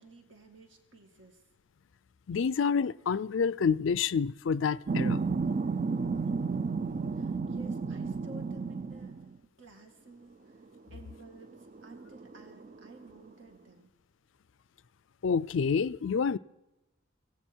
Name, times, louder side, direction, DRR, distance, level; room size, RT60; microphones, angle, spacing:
voice 1, 0.0-1.4 7.1-9.2 9.6-10.6 10.9-11.5 11.8-13.9, right 2 dB, 70° right, 2.3 m, -53 dB
voice 2, 2.3-5.2 15.2-16.4, left 6 dB, 70° left, 0.4 m, -28 dB
sound 1, 4.9-9.3 10.6-10.8 11.1-13.2, right 4 dB, 40° right, 0.4 m, -32 dB
17.0 x 16.5 x 4.5 m
head